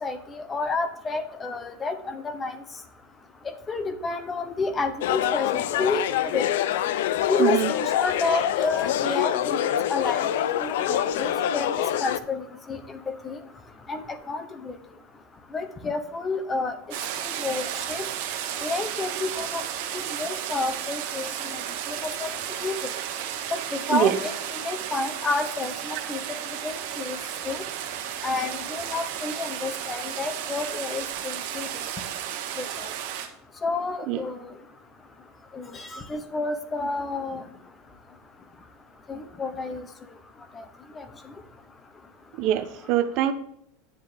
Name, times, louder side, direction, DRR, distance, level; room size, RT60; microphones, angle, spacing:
voice 1, 0.0-2.6 3.7-6.5 7.3-9.6 9.9-10.3 10.6-11.7 12.0-12.4 12.7-12.8 13.2-13.4 13.9-14.0 14.3-14.7 15.5-16.7 17.4-17.6 17.9-18.0 18.6-19.6 19.9-21.3 21.9-22.3 22.6-22.7 23.5-26.2 26.6-27.2 27.5-27.6 28.2-31.7 32.6-32.9 33.6-34.4 35.5-37.4 39.1-39.8 40.6-40.7 41.0-41.1, left 3 dB, 15° left, 10 dB, 0.7 m, -30 dB
sound 1, 5.0-12.2, left 11 dB, 70° left, 0.5 m, -25 dB
voice 2, 7.4-7.7 23.9-24.1 34.1-34.2 42.4-43.3, right 12 dB, 40° right, 10 dB, 0.8 m, -23 dB
sound 2, 16.9-33.3, right 10 dB, 55° right, 1.3 m, -33 dB
9.8 x 7.2 x 3.5 m, 0.73 s
supercardioid pair, 175°, 0 cm